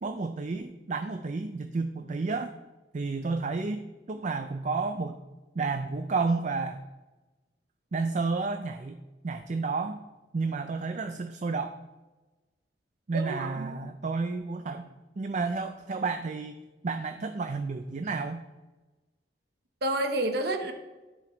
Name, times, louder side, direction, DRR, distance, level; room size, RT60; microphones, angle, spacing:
voice 1, 0.0-2.5 2.9-5.2 5.6-6.8 7.9-9.0 9.2-10.0 10.3-11.8 13.1-14.9 15.2-16.6 16.8-18.4, right 4 dB, 40° right, 8 dB, 0.4 m, -31 dB
voice 2, 13.1-13.8 19.8-20.7, right 1 dB, 65° right, 5 dB, 1.0 m, -29 dB
13.5 x 5.2 x 3.9 m, 1.2 s
head